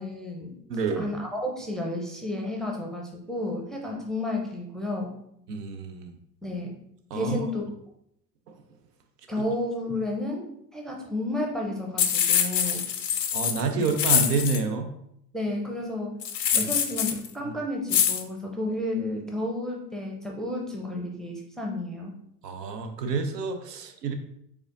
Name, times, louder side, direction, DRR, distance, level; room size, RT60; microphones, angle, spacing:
voice 1, 0.0-0.6 1.0-5.1 6.4-6.7 7.1-7.7 9.3-12.8 13.7-13.9 15.3-16.2 16.5-22.1, left 1 dB, ahead, 0 dB, 0.5 m, -32 dB
voice 2, 0.7-1.1 5.5-6.1 7.1-7.4 13.3-14.9 16.5-16.6 22.4-24.1, right 4 dB, 75° right, 6 dB, 0.7 m, -28 dB
sound 1, 12.0-14.6 16.2-17.3 17.9-18.2, left 8 dB, 85° left, 0.6 m, -24 dB
4.9 x 3.5 x 2.5 m, 0.74 s
figure-of-eight pair, 70°, 49 cm